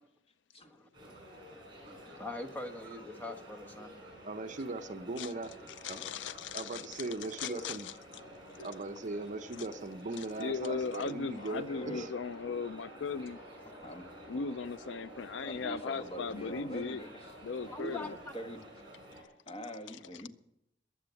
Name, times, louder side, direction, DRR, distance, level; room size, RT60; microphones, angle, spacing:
voice 1, 0.6-1.1 1.5-3.9 7.4-7.6 8.6-8.9 17.7-18.3, left 1 dB, 10° left, 3 dB, 1.5 m, -43 dB
sound 1, 0.9-19.2, equal, 25° right, 6.1 m, -51 dB
voice 2, 4.2-5.5 5.9-6.0 6.5-7.9 8.6-12.1, right 2 dB, 45° right, 10 dB, 0.7 m, -39 dB
voice 3, 5.8-7.1 7.4-7.9 10.2-13.4 14.3-17.0 17.4-18.1, left 5 dB, 70° left, 15 dB, 0.5 m, -38 dB
voice 4, 11.4-12.1 13.8-14.1 15.4-17.3 17.6-18.6 19.5-20.3, right 1 dB, 30° left, 5 dB, 1.6 m, -44 dB
21.5 x 7.9 x 7.0 m, 0.83 s
head